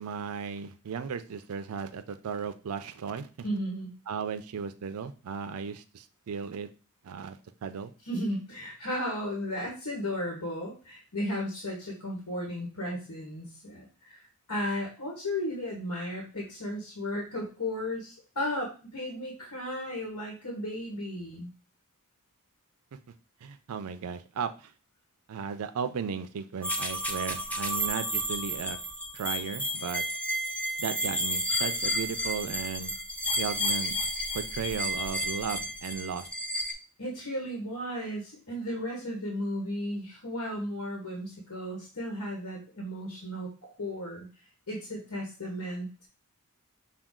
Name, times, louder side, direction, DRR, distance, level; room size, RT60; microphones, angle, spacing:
voice 1, 0.0-3.3 4.1-6.7 7.0-7.9 22.9-23.0 23.4-24.7 25.3-28.8 29.1-30.0 30.8-32.9 33.4-34.0 34.3-36.3, right 6 dB, 70° right, 9 dB, 0.4 m, -35 dB
voice 2, 3.4-3.9 8.1-14.2 14.5-21.5 37.0-43.5 43.8-44.3 44.7-45.9, left 1 dB, 85° left, -1 dB, 1.4 m, -34 dB
sound 1, 26.6-36.7, equal, 5° left, 0.5 m, -31 dB
5.9 x 2.3 x 3.6 m, 0.34 s
head